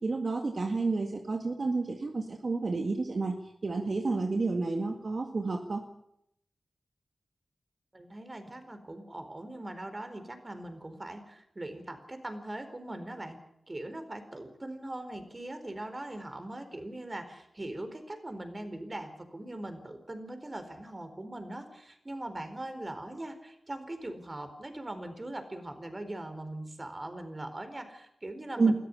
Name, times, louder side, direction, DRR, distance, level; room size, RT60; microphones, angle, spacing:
voice 1, 0.0-3.4 3.6-5.8 28.6-28.7, right 3 dB, 60° right, 4 dB, 1.9 m, -30 dB
voice 2, 7.9-13.4 13.7-28.7, right 1 dB, 35° right, 9 dB, 4.5 m, -41 dB
21.0 x 13.5 x 9.9 m, 0.76 s
cardioid pair, 45°, 0 cm